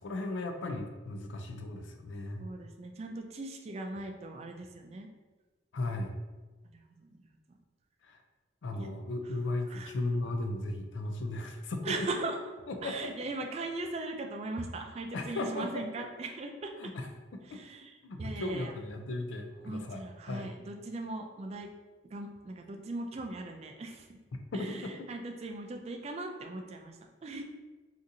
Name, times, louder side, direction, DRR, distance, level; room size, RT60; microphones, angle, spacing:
voice 1, 0.0-2.5 5.7-6.1 8.0-8.2 8.6-12.1 12.7-13.1 15.1-16.0 16.8-17.1 17.3-17.6 18.0-20.5 24.5-25.1, left 2 dB, 80° left, 4 dB, 0.4 m, -36 dB
voice 2, 2.4-5.1 6.7-7.6 8.8-8.9 9.7-9.9 11.8-12.4 12.8-16.9 17.5-18.7 19.6-21.7 22.1-24.1 24.5-27.4, right 2 dB, 35° right, 3 dB, 0.3 m, -39 dB
3.8 x 2.5 x 2.6 m, 1.2 s
head